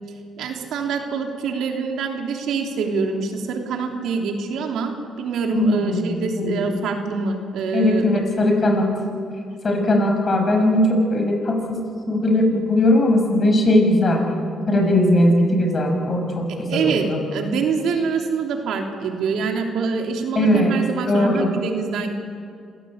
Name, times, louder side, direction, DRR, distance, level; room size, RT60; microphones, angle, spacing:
voice 1, 0.4-8.2 16.7-22.1, right 5 dB, 80° right, 3 dB, 3.1 m, -25 dB
voice 2, 5.5-6.9 7.7-8.9 9.6-14.3 14.7-17.2 20.3-21.6, left 1 dB, 40° left, 3 dB, 6.2 m, -19 dB
27.0 x 16.0 x 8.7 m, 2.3 s
cardioid pair, 90°, 0 cm